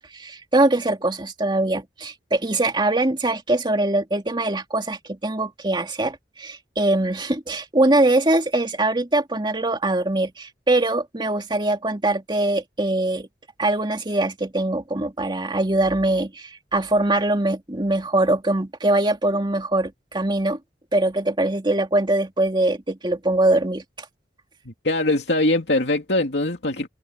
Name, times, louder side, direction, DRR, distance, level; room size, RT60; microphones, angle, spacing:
voice 1, 0.0-13.3 13.6-20.6 20.9-24.1, right 2 dB, 25° right, 2.5 m, -22 dB
voice 2, 24.6-26.9, left 2 dB, 80° left, 2.5 m, -22 dB
head